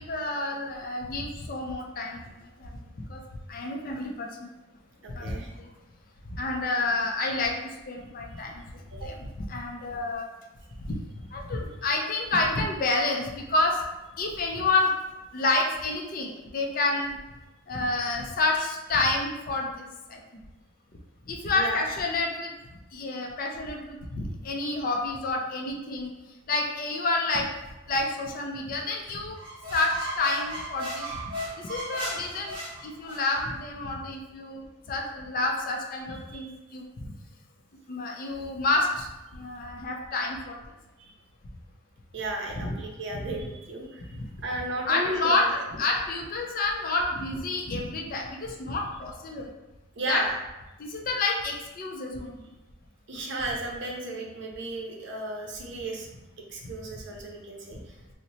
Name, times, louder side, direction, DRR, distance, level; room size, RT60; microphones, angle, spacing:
voice 1, 0.0-2.2 2.6-3.2 3.5-4.5 5.1-5.7 6.3-10.3 10.8-11.0 11.3-13.8 14.2-14.9 15.3-17.2 17.7-20.2 21.3-22.5 22.9-26.1 26.5-27.5 27.9-29.4 29.7-31.3 31.6-37.1 37.9-40.6 42.6-42.7 43.1-43.3 44.1-44.3 44.9-49.5 50.1-50.2 50.8-52.5, left 2 dB, 45° left, 1 dB, 0.4 m, -29 dB
voice 2, 5.0-5.5 8.9-9.1 21.5-21.8 36.3-36.5 41.0-41.1 42.1-44.1 44.4-45.5 50.0-50.3 53.1-56.1 56.5-58.0, right 2 dB, 55° right, 0 dB, 0.6 m, -34 dB
sound 1, 29.3-33.4, right 1 dB, 25° right, 0.8 m, -36 dB
2.8 x 2.1 x 4.0 m, 1.1 s
head